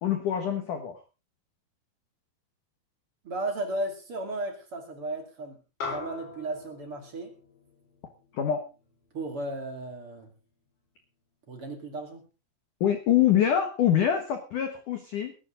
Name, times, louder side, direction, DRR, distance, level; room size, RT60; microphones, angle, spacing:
voice 1, 0.0-1.0 8.3-8.7 12.8-15.3, left 10 dB, 85° left, 7 dB, 1.8 m, -25 dB
voice 2, 3.2-7.3 9.1-10.3 11.5-12.2, right 2 dB, 40° right, 4 dB, 2.2 m, -35 dB
sound 1, 5.8-10.4, left 4 dB, 60° left, 6.6 m, -42 dB
19.5 x 12.0 x 3.8 m, 0.32 s
omnidirectional pair, 6.0 m